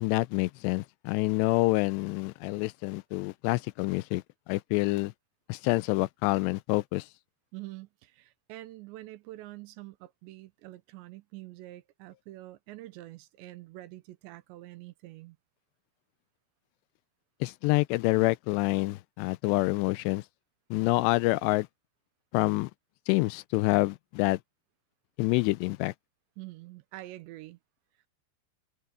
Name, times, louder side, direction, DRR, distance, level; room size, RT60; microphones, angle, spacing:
voice 1, 0.0-5.1 5.5-7.1 17.4-20.2 20.7-21.7 22.3-22.7 23.1-24.4 25.2-25.9, left 22 dB, 85° left, 2.6 m, -27 dB
voice 2, 7.5-15.4 26.4-27.6, right 17 dB, 85° right, 3.0 m, -46 dB
omnidirectional pair, 5.2 m